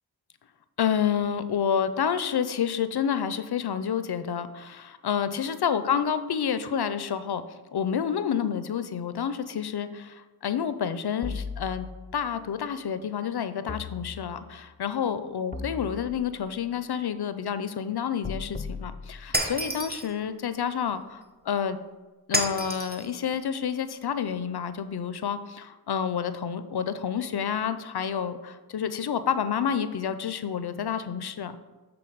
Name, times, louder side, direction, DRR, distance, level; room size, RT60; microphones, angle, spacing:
voice 1, 0.8-7.4 7.7-11.9 12.1-21.8 22.3-31.6, left 8 dB, 80° left, 12 dB, 0.6 m, -29 dB
sound 1, 11.2-12.3 13.7-14.7 15.5-16.6 18.2-19.7, left 4 dB, 20° left, 0.6 m, -38 dB
Shatter, 19.3-20.1 22.3-23.1, right 1 dB, 25° right, 1.1 m, -29 dB
7.8 x 3.8 x 6.2 m, 1.2 s
wide cardioid pair, 50°, 38 cm